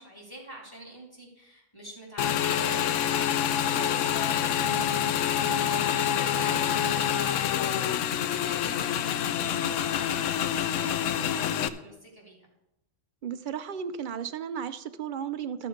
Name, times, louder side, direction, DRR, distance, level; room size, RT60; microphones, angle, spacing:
voice 1, 0.0-12.5, equal, 15° left, -3 dB, 3.1 m, -45 dB
Motorcycle / Engine, 2.2-11.7, left 9 dB, 85° left, 1.0 m, -27 dB
voice 2, 13.2-15.7, right 8 dB, 55° right, 11 dB, 0.6 m, -34 dB
13.0 x 6.7 x 5.1 m, 0.88 s
omnidirectional pair, 1.3 m